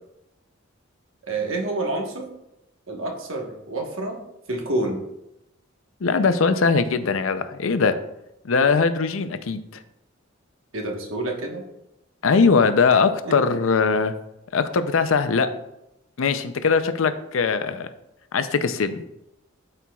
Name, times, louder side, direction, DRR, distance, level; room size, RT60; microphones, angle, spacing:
voice 1, 1.3-2.3 2.9-4.2 4.5-5.0 10.7-11.6 13.3-13.4, right 2 dB, 75° right, 1 dB, 1.3 m, -28 dB
voice 2, 6.0-8.0 8.4-9.6 12.2-14.1 14.5-15.5 16.2-17.9 18.3-19.0, left 5 dB, 80° left, 11 dB, 0.5 m, -20 dB
12.0 x 4.4 x 2.3 m, 0.88 s
head